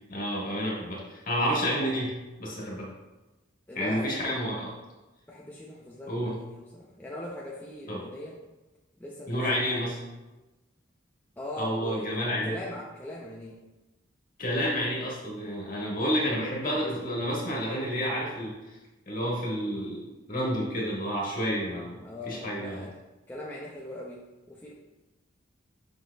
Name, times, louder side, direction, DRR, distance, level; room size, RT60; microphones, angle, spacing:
voice 1, 0.1-2.1 2.4-2.9 3.7-4.7 6.1-6.3 7.9-8.0 9.3-10.0 11.6-12.5 14.4-18.5 19.0-22.9, equal, 45° left, -4 dB, 1.7 m, -30 dB
voice 2, 3.7-4.4 5.3-8.4 9.0-9.8 11.4-12.1 12.4-13.6 15.9-16.3 22.0-23.0 23.3-24.7, left 1 dB, 10° left, -4 dB, 0.6 m, -40 dB
6.5 x 6.3 x 2.3 m, 1.1 s
head